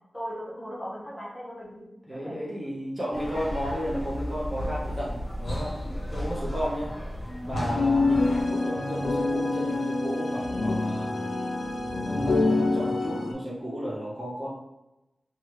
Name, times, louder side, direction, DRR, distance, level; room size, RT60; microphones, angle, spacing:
voice 1, 0.1-2.4, equal, 15° left, -7 dB, 1.1 m, -38 dB
voice 2, 2.1-6.9 7.4-11.1 12.0-14.5, equal, 20° right, -7 dB, 0.7 m, -33 dB
sound 1, 3.1-8.4, equal, 60° left, 0.7 m, -34 dB
Wind instrument woodwind instrument, 7.2-13.5, right 1 dB, 60° right, 0.7 m, -37 dB
sound 2, 7.6-13.3, left 3 dB, 85° left, 0.3 m, -26 dB
2.8 x 2.3 x 3.0 m, 0.94 s
wide cardioid pair, 90°, 0 cm